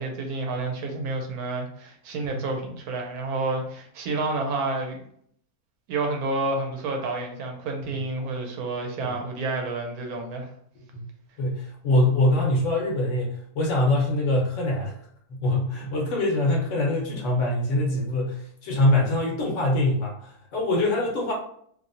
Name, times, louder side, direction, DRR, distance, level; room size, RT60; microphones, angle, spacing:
voice 1, 0.0-5.0 5.9-10.5, right 3 dB, 85° right, 3 dB, 1.1 m, -29 dB
voice 2, 11.4-14.9 15.3-21.3, left 1 dB, 60° left, -1 dB, 1.1 m, -24 dB
2.9 x 2.7 x 2.7 m, 0.65 s
omnidirectional pair, 1.6 m